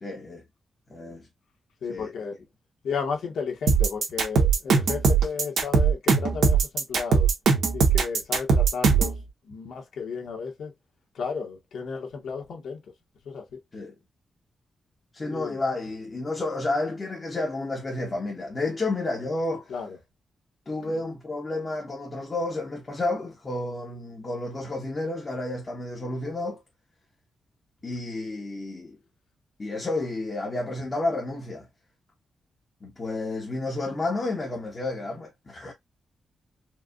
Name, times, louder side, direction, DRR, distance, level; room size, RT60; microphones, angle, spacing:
voice 1, 0.0-0.4 0.9-1.3 1.9-2.1 13.7-13.9 15.1-19.7 20.7-26.6 27.8-29.0 29.6-31.7 32.8-35.7, left 2 dB, 25° left, 1.0 m, -31 dB
voice 2, 1.8-2.4 2.8-7.3 7.7-9.1 9.5-10.7 11.1-12.8 13.2-13.5 15.3-15.6 19.7-19.9 20.8-20.9, left 5 dB, 85° left, 1.5 m, -33 dB
sound 1, 3.7-9.2, right 5 dB, 80° right, 1.3 m, -20 dB
4.6 x 2.4 x 2.4 m
wide cardioid pair, 175°, 0 cm